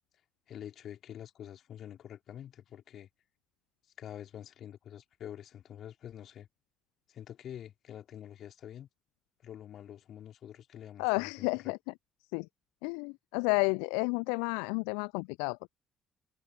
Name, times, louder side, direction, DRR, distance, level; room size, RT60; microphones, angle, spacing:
voice 1, 0.5-3.1 4.0-6.5 7.1-8.9 9.4-11.7, left 10 dB, 55° left, 4.0 m, -47 dB
voice 2, 11.0-11.8 12.3-12.5 12.8-15.7, left 37 dB, 70° left, 0.3 m, -31 dB
figure-of-eight pair, 45°, 0 cm